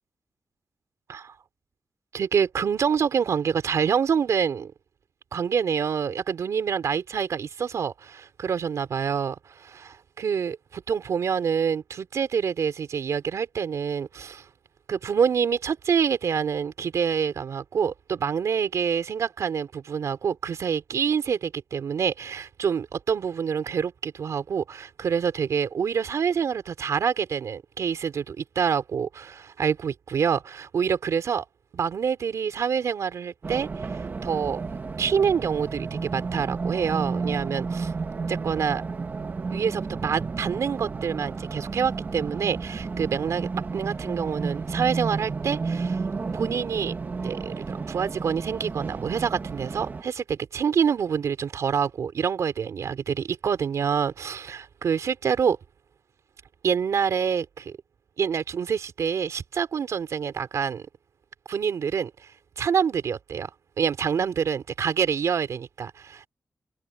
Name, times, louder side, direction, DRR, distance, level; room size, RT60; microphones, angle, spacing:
voice 1, 2.1-4.7 5.3-14.4 14.9-31.5 31.7-34.6 35.0-37.9 38.3-38.8 39.5-46.0 46.3-46.9 47.2-55.6 56.6-57.8 58.2-60.8 61.5-62.1 62.6-63.5 63.8-66.3, right 7 dB, 75° right, 3.6 m, -26 dB
Race car auto racing, 33.4-50.0, right 4 dB, 35° right, 1.5 m, -32 dB
wide cardioid pair, 155°, 5 cm